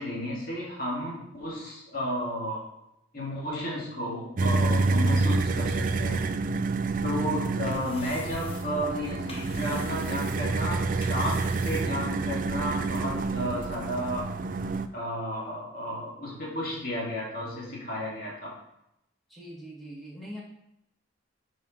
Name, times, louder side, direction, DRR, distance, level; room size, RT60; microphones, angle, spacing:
voice 1, 0.0-2.6 3.1-6.3 7.0-14.3 14.9-18.5, equal, 45° left, -5 dB, 2.4 m, -33 dB
sound 1, 4.4-14.9, right 3 dB, 40° right, 0.4 m, -28 dB
sound 2, 7.3-12.4, left 2 dB, 30° left, 1.1 m, -48 dB
voice 2, 19.3-20.4, equal, ahead, -5 dB, 1.9 m, -42 dB
7.5 x 5.1 x 4.4 m, 0.82 s
head